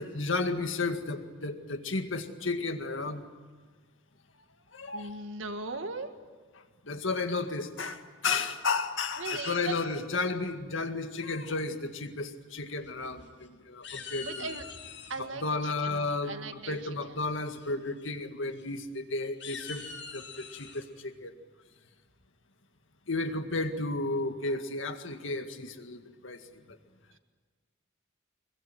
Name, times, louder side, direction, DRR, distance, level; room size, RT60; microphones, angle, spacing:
voice 1, 0.0-3.2 4.7-5.1 6.9-14.6 15.2-19.8 20.1-21.3 23.1-26.4, left 3 dB, 85° left, 7 dB, 2.0 m, -33 dB
voice 2, 4.9-6.1 9.2-9.7 14.2-14.7 15.1-16.9, right 3 dB, 90° right, 7 dB, 1.9 m, -38 dB
sound 1, 12.9-13.5 13.8-15.2 16.7-17.1 17.5-17.7 18.0-18.1 18.5-18.6 19.2-20.8, left 5 dB, 65° left, 6.6 m, -44 dB
25.5 x 22.5 x 9.3 m, 1.4 s
head